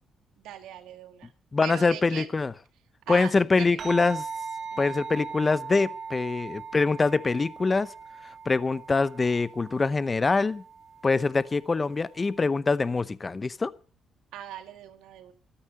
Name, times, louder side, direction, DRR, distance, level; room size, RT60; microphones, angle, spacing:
voice 1, 0.4-1.3 1.6-2.3 3.1-3.9 4.7-5.0 14.3-15.3, right 11 dB, 90° right, 1.9 m, -40 dB
voice 2, 1.5-2.5 3.1-4.2 4.8-7.9 8.5-10.6 11.0-13.7, left 4 dB, 30° left, 0.7 m, -24 dB
sound 1, 3.8-12.5, right 5 dB, 50° right, 2.8 m, -40 dB
13.5 x 13.0 x 6.5 m
cardioid pair, 90°, 0 cm